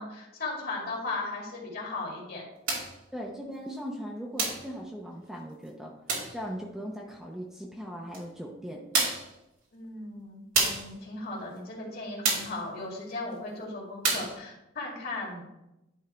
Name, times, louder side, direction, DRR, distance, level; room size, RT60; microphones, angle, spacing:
voice 1, 0.0-2.4 9.7-15.4, left 2 dB, 50° left, -2 dB, 2.2 m, -37 dB
sound 1, 2.7-3.0 4.4-4.7 6.1-6.4 8.1-8.2 8.9-9.3 10.5-10.9 12.2-12.6 14.0-14.4, right 3 dB, 85° right, 2.4 m, -28 dB
voice 2, 3.1-5.9 6.3-8.9, equal, ahead, -1 dB, 0.7 m, -39 dB
10.5 x 3.7 x 4.4 m, 0.92 s
head